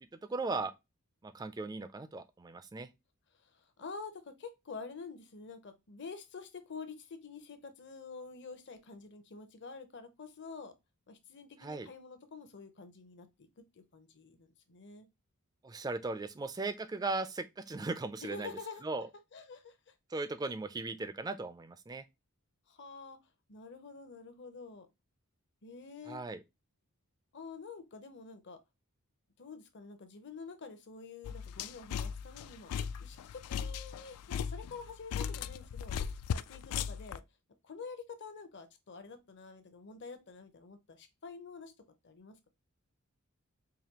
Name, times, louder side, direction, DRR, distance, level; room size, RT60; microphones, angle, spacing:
voice 1, 0.3-0.7 1.2-2.9 11.6-11.9 15.6-18.5 18.8-19.1 20.1-22.0 26.1-26.4, right 3 dB, 15° right, 0.3 m, -37 dB
voice 2, 3.4-10.7 11.1-13.5 13.7-15.1 18.2-18.8 19.3-19.9 22.7-23.2 23.5-24.9 25.6-26.2 27.3-28.6 29.4-32.7 33.0-37.2 37.6-41.7 42.0-42.5, left 4 dB, 50° left, 0.7 m, -48 dB
sound 1, 31.2-37.2, left 7 dB, 80° left, 0.3 m, -37 dB
4.9 x 2.6 x 2.9 m
head